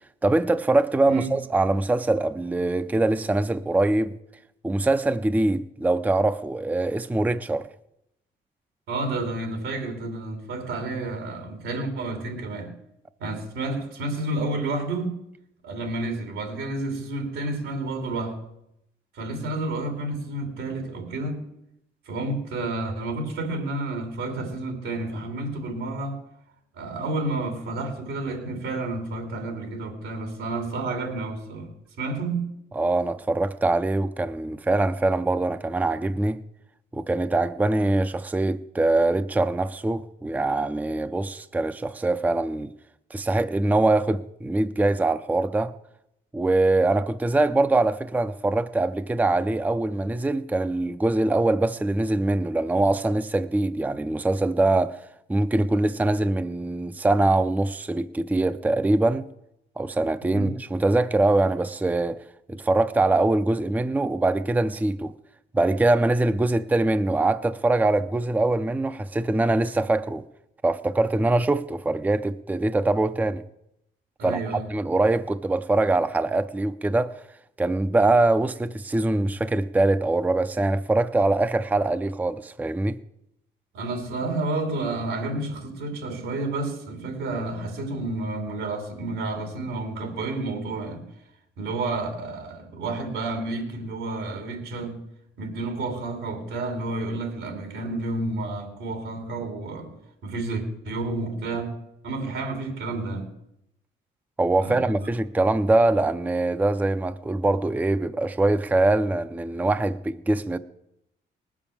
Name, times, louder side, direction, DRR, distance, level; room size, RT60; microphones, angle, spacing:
voice 1, 0.2-4.1 4.6-7.7 32.7-36.4 36.9-42.7 43.1-45.7 46.3-59.3 59.8-62.2 62.5-65.1 65.5-70.2 70.6-73.4 74.2-77.1 77.6-83.0 104.4-110.6, right 2 dB, 10° right, 0.5 m, -23 dB
voice 2, 8.9-12.7 13.2-15.2 15.6-18.4 19.1-21.4 22.0-26.2 26.7-32.5 60.3-60.5 74.2-74.7 83.7-91.1 91.6-95.0 95.4-100.0 100.2-101.7 102.0-103.3 104.6-104.9, right 2 dB, 90° right, 3.1 m, -30 dB
19.0 x 7.2 x 7.2 m
cardioid pair, 90°, 20 cm